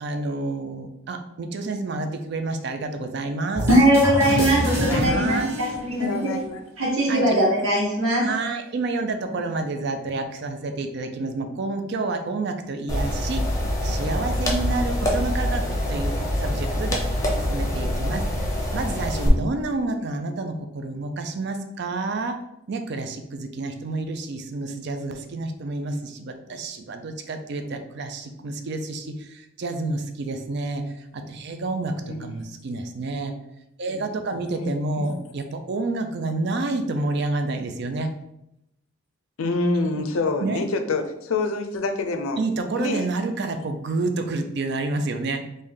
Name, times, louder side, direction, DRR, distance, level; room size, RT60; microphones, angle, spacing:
voice 1, 0.0-3.7 4.7-5.5 7.1-7.4 8.2-13.4 13.8-18.3 18.7-22.4 22.7-33.3 33.8-38.2 39.8-40.1 40.4-40.7 42.4-45.4, right 3 dB, 55° right, 7 dB, 0.4 m, -29 dB
sound 1, 3.5-6.4, equal, 10° right, 0.9 m, -27 dB
voice 2, 3.7-6.1 6.8-8.3, equal, 80° right, -5 dB, 1.3 m, -20 dB
voice 3, 4.5-5.4 6.0-6.6 32.0-32.5 34.5-35.2 39.4-42.4 42.8-43.1, left 3 dB, 80° left, 6 dB, 0.5 m, -27 dB
sound 2, 12.9-19.3, left 1 dB, 15° left, 0.6 m, -25 dB
3.3 x 2.6 x 3.7 m, 0.83 s
head